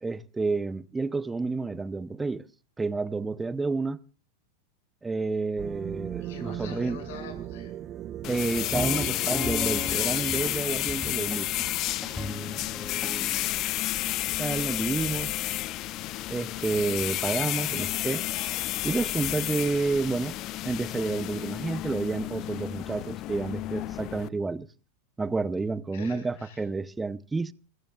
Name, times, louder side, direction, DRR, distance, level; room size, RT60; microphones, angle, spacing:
voice 1, 0.0-2.5 2.8-4.0 5.0-7.0 8.3-11.5 14.4-15.4 16.3-18.2 18.8-20.4 20.6-24.7 25.2-27.5, right 3 dB, 15° right, 0.7 m, -30 dB
sound 1, 5.6-10.6, right 11 dB, 35° right, 1.1 m, -38 dB
voice 2, 6.2-7.7 12.1-12.4 25.9-26.6, left 6 dB, 65° left, 6.8 m, -45 dB
sound 2, 8.2-24.3, left 16 dB, 45° left, 0.6 m, -31 dB
sound 3, 8.6-13.6, left 1 dB, 10° left, 3.1 m, -37 dB
29.5 x 14.5 x 2.4 m
hypercardioid pair, 95°, 0 cm